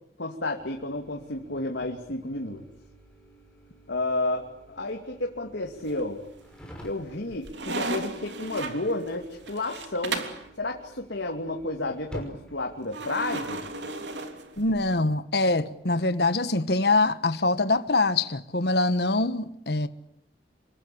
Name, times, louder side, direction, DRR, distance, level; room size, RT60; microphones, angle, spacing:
voice 1, 0.2-2.6 3.9-4.4 4.7-6.2 6.8-10.2 10.6-13.6, left 2 dB, 85° left, 2.8 m, -31 dB
sound 1, 0.6-13.8, equal, 5° left, 5.7 m, -49 dB
sound 2, 5.8-6.4 6.8-10.5 12.9-15.0, right 3 dB, 85° right, 3.2 m, -35 dB
voice 2, 14.6-19.9, left 2 dB, 65° left, 1.4 m, -24 dB
27.5 x 24.0 x 8.6 m
head